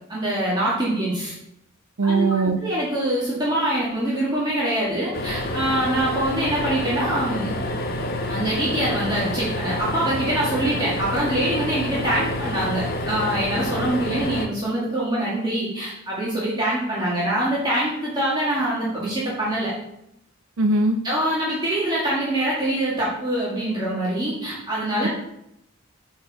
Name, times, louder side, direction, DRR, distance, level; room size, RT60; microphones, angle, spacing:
voice 1, 0.1-1.3 2.0-7.5 8.3-19.7 21.0-25.1, right 1 dB, 20° right, -7 dB, 2.0 m, -24 dB
voice 2, 2.0-2.6 20.6-21.0 25.0-25.1, right 3 dB, 70° right, 5 dB, 0.6 m, -20 dB
sound 1, 5.1-14.5, left 1 dB, 45° left, 0.8 m, -28 dB
8.3 x 4.5 x 4.8 m, 0.80 s
head